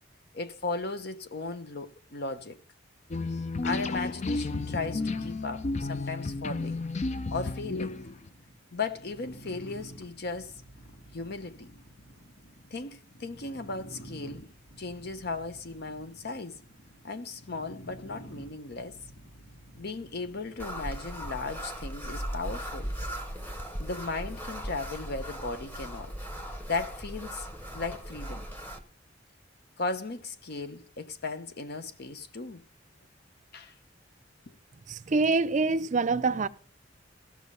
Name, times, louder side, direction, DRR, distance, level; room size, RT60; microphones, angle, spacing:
voice 1, 0.3-2.6 3.6-6.9 7.3-8.0 8.7-10.6 11.1-11.7 12.7-14.5 14.8-16.6 17.0-19.0 19.8-22.9 23.8-26.1 26.7-27.5 27.7-28.5 29.8-32.6 33.5-33.7 34.5-34.6, left 3 dB, 55° left, 0.8 m, -36 dB
sound 1, 3.1-8.3, left 3 dB, 35° left, 0.5 m, -32 dB
sound 2, 4.1-21.3, right 1 dB, 75° left, 2.8 m, -50 dB
sound 3, 20.6-28.8, equal, 10° left, 1.2 m, -38 dB
voice 2, 34.9-36.5, right 3 dB, 40° right, 0.5 m, -25 dB
15.5 x 6.2 x 5.5 m
head